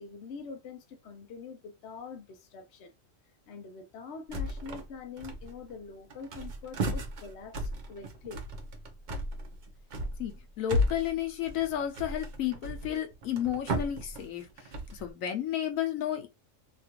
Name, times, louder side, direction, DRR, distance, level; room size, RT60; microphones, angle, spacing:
voice 1, 0.0-2.9 3.5-8.4, left 4 dB, 65° left, 0.8 m, -44 dB
sound 1, 4.3-4.9 5.2-5.8 6.1-15.1, equal, 50° right, 0.6 m, -35 dB
voice 2, 10.2-14.5 14.9-16.3, left 11 dB, 85° left, 1.1 m, -32 dB
2.9 x 2.5 x 2.8 m
omnidirectional pair, 1.4 m